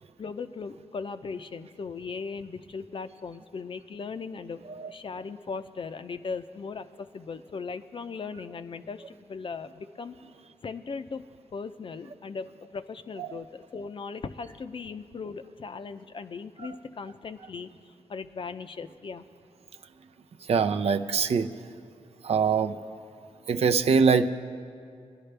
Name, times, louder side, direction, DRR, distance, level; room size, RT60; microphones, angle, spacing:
voice 1, 0.2-10.2 10.6-11.2 11.5-19.2, left 5 dB, 50° left, 10 dB, 0.6 m, -38 dB
voice 2, 20.5-21.5 22.2-22.8 23.5-24.3, right 5 dB, 65° right, 8 dB, 0.6 m, -23 dB
23.5 x 10.5 x 3.4 m, 2.3 s
cardioid pair, 65°, 12 cm